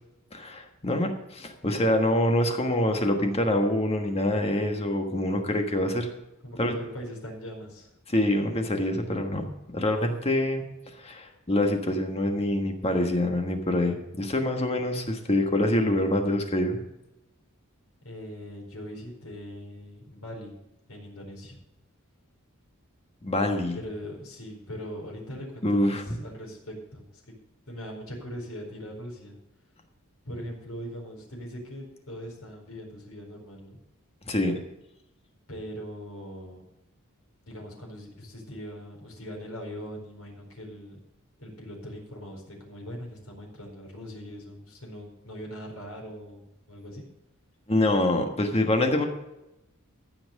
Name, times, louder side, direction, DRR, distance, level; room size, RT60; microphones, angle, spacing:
voice 1, 0.3-6.1 6.6-6.7 8.1-9.5 9.7-10.6 11.0-16.8 23.2-23.8 25.6-26.1 34.3-34.5 47.7-49.1, left 1 dB, 30° left, 4 dB, 1.4 m, -25 dB
voice 2, 6.4-7.9 18.0-20.5 20.9-21.6 23.7-27.2 27.7-29.4 30.2-33.8 35.5-36.6 37.5-41.0 41.4-47.0, equal, 85° left, 0 dB, 4.5 m, -41 dB
15.0 x 6.0 x 6.5 m, 0.91 s
head